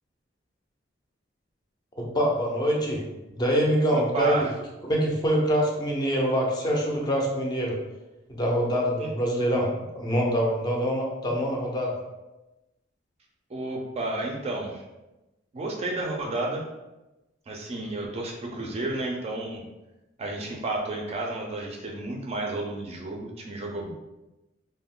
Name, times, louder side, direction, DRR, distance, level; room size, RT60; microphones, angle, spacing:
voice 1, 2.0-3.0 3.3-4.5 4.8-7.8 8.3-9.7 9.9-11.9, equal, 20° left, -2 dB, 0.5 m, -25 dB
voice 2, 3.9-4.5 9.0-9.1 13.5-14.8 15.5-16.6 17.5-19.7 20.2-23.9, right 2 dB, 35° right, 0 dB, 0.4 m, -31 dB
2.3 x 2.1 x 3.6 m, 1.0 s
head